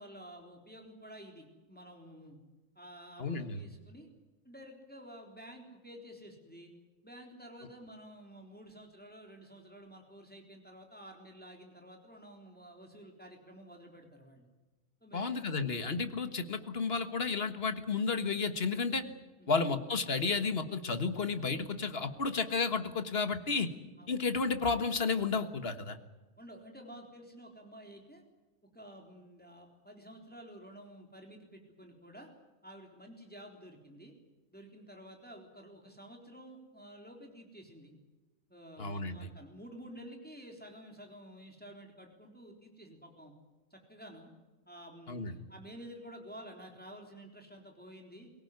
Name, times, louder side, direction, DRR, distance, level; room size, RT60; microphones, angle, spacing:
voice 1, 0.0-2.4 2.8-4.1 4.4-6.7 7.0-14.5 15.0-15.3 19.4-19.5 24.0-24.1 26.4-28.2 28.7-32.3 32.6-34.1 34.5-37.9 38.5-43.3 43.7-44.3 44.7-48.3, equal, 5° left, 2 dB, 3.8 m, -51 dB
voice 2, 3.2-3.6 15.1-19.0 19.5-23.7 24.1-26.0 38.8-39.2 45.1-45.3, left 4 dB, 40° left, 9 dB, 1.8 m, -32 dB
23.5 x 17.5 x 9.6 m, 1.2 s
omnidirectional pair, 1.6 m